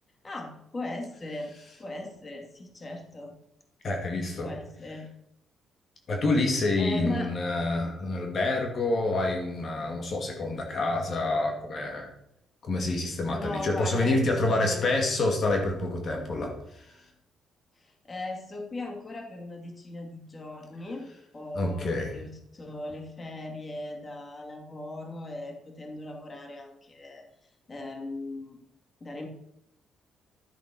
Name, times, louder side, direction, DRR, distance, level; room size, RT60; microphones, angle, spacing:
voice 1, 0.2-1.5 1.8-3.3 4.4-5.1 6.8-7.3 13.0-14.9 17.8-21.1 21.3-27.2 27.7-28.6 29.0-29.3, left 2 dB, 30° left, 3 dB, 2.6 m, -38 dB
voice 2, 3.8-4.5 6.1-12.1 12.6-17.0 21.5-22.1, left 2 dB, 50° left, 2 dB, 2.4 m, -27 dB
12.5 x 7.7 x 6.3 m, 0.79 s
cardioid pair, 90°, 0 cm